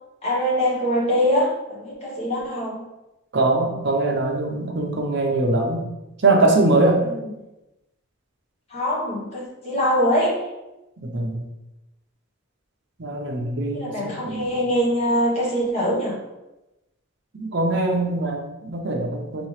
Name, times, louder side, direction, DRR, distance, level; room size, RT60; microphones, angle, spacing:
voice 1, 0.2-2.8 7.0-7.2 8.7-10.3 13.7-16.2, equal, 30° left, -6 dB, 1.1 m, -23 dB
voice 2, 3.3-5.8 6.2-7.0 11.0-11.4 13.0-14.6 17.3-19.5, right 2 dB, 55° right, 1 dB, 0.7 m, -22 dB
3.9 x 3.0 x 3.2 m, 0.99 s
head